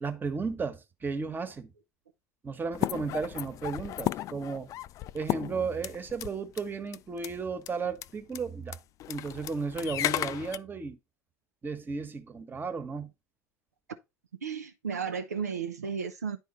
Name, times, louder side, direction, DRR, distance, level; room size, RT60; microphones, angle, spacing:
voice 1, 0.0-1.7 2.4-4.7 5.1-8.8 9.1-11.0 11.6-13.1, right 4 dB, 25° right, 1.2 m, -34 dB
sound 1, 2.7-6.3 6.6-6.7 6.9-7.3 7.7-7.8 7.9-8.1 8.4-8.5 8.7-10.6, left 13 dB, 40° left, 0.3 m, -34 dB
voice 2, 14.4-16.4, right 6 dB, 80° right, 0.6 m, -33 dB
9.6 x 4.5 x 4.1 m
figure-of-eight pair, 70°, 9 cm